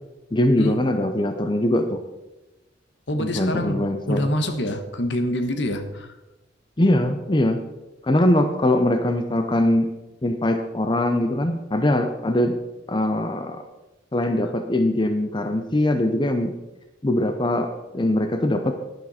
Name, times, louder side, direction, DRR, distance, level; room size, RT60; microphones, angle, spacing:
voice 1, 0.3-2.0 3.2-4.3 6.8-7.6 8.0-9.9 10.2-12.6 12.9-13.6 14.1-16.6 17.0-18.7, left 1 dB, 25° left, 6 dB, 0.7 m, -22 dB
voice 2, 3.1-6.2, left 1 dB, 65° left, 8 dB, 1.2 m, -26 dB
11.0 x 11.0 x 4.3 m, 1.0 s
head